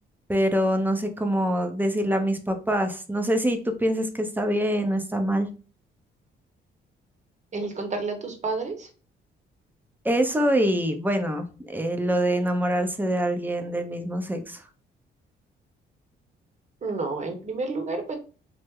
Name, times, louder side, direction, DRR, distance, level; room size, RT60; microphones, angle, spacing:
voice 1, 0.3-5.5 10.0-14.6, equal, 10° right, 5 dB, 0.6 m, -25 dB
voice 2, 7.5-8.9 16.8-18.2, right 3 dB, 35° right, 5 dB, 0.9 m, -30 dB
3.1 x 2.0 x 3.5 m, 0.36 s
cardioid pair, 90°, 20 cm